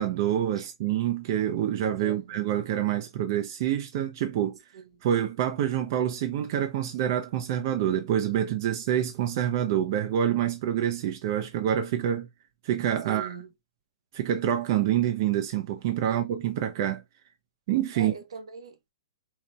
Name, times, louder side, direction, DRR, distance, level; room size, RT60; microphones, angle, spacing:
voice 1, 0.0-4.6 5.0-12.3 12.6-13.4 14.1-17.0 17.7-18.1, right 10 dB, 40° right, 0.5 m, -27 dB
voice 2, 2.0-2.4 4.7-4.9 13.0-13.5 16.1-16.2 17.9-18.9, right 5 dB, 85° right, 1.0 m, -41 dB
4.1 x 2.7 x 2.2 m
hypercardioid pair, 160°, 3 cm